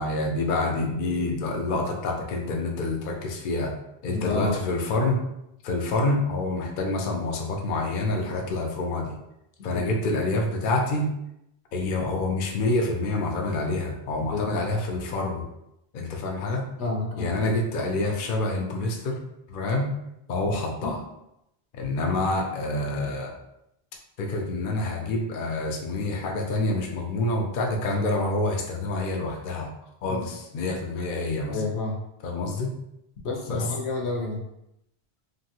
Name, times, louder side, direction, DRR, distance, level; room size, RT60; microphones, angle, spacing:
voice 1, 0.0-3.7 4.0-5.2 5.6-9.2 9.6-11.1 11.7-15.5 15.9-16.6 17.2-19.2 19.5-19.9 20.3-21.0 21.7-23.3 24.2-29.7 30.0-31.6 32.2-32.7 33.5-33.6, left 2 dB, 60° left, 1 dB, 0.6 m, -27 dB
voice 2, 4.1-4.6 9.7-9.8 14.1-14.5 16.8-17.3 30.0-30.2 31.5-32.0 33.2-34.4, left 3 dB, 85° left, -1 dB, 1.0 m, -29 dB
3.1 x 2.2 x 2.8 m, 0.82 s
omnidirectional pair, 1.1 m